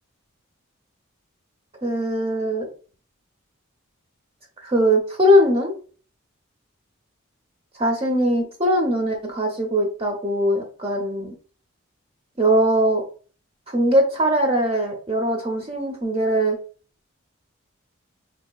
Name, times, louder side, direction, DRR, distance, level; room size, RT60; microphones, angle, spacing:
voice 1, 1.8-2.7 4.6-5.7 7.8-11.3 12.4-13.0 13.7-16.6, equal, 25° right, 2 dB, 0.8 m, -21 dB
5.0 x 2.9 x 2.3 m, 0.39 s
head